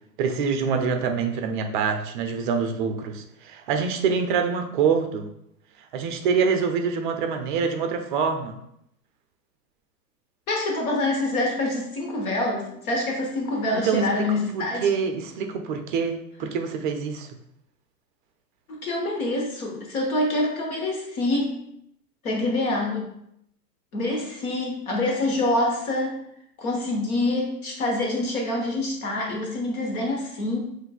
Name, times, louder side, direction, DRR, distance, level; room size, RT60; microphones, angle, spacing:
voice 1, 0.2-5.3 5.9-8.6 13.7-14.1 14.5-17.3, right 6 dB, 30° right, 5 dB, 0.4 m, -25 dB
voice 2, 10.5-14.9 18.7-21.6 22.2-23.1 23.9-26.2 26.6-30.6, left 2 dB, 55° left, -1 dB, 1.3 m, -26 dB
7.6 x 2.6 x 2.3 m, 0.76 s
hypercardioid pair, 105°, 50 cm